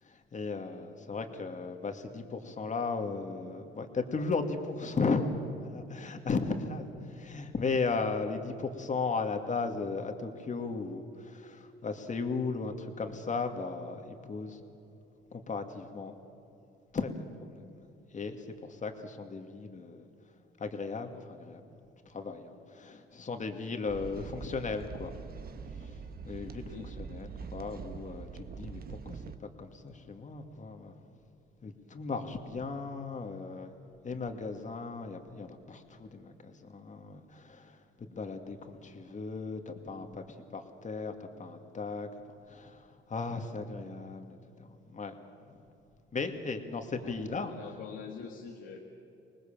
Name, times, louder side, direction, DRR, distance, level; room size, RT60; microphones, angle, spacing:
voice 1, 0.0-14.6 15.3-16.2 16.9-17.9 18.1-20.1 20.6-21.6 22.1-25.1 25.8-25.9 26.3-31.0 31.6-33.7 34.0-42.1 42.5-45.1 45.5-45.6 46.1-47.5, left 4 dB, 40° left, 5 dB, 2.3 m, -36 dB
sound 1, 23.9-29.4, right 5 dB, 50° right, 1.2 m, -44 dB
voice 2, 26.7-27.2 47.0-47.2 47.5-48.8, left 6 dB, 80° left, 1 dB, 1.9 m, -45 dB
25.0 x 20.0 x 7.4 m, 2.8 s
cardioid pair, 90°, 20 cm